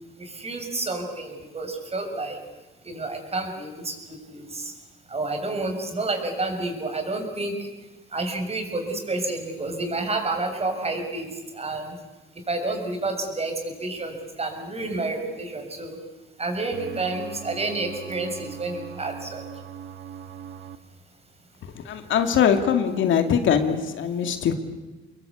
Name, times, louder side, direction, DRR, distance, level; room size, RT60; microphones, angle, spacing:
voice 1, 0.2-2.4 2.8-4.0 4.3-4.7 5.1-7.7 8.1-11.9 12.5-16.0 16.4-19.4, right 2 dB, 30° right, 4 dB, 6.5 m, -29 dB
sound 1, 16.7-20.8, right 8 dB, 85° right, 1.5 m, -40 dB
voice 2, 21.7-24.5, left 8 dB, 75° left, 7 dB, 2.4 m, -22 dB
26.5 x 21.5 x 8.5 m, 1.2 s
cardioid pair, 90°, 20 cm